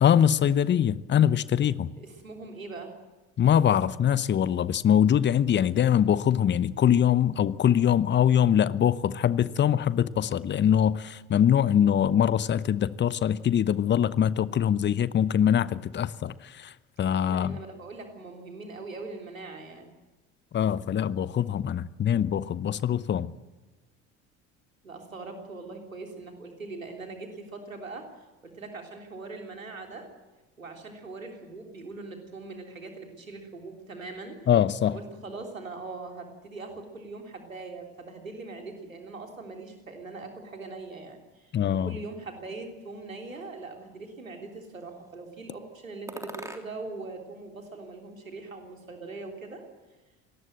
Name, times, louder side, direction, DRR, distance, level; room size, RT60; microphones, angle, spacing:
voice 1, 0.0-1.9 3.4-16.7 17.0-17.5 20.5-23.3 34.5-35.0 41.5-41.9, left 9 dB, 30° left, 0.9 m, -23 dB
voice 2, 2.0-2.9 17.2-19.9 24.8-28.1 28.4-30.1 30.6-34.4 34.8-49.6, right 3 dB, 85° right, 3.5 m, -41 dB
sound 1, 42.9-43.9 44.5-45.2 46.1-47.0 47.3-48.4, right 1 dB, 10° right, 3.4 m, -46 dB
26.5 x 19.0 x 7.8 m
figure-of-eight pair, 60°, 39 cm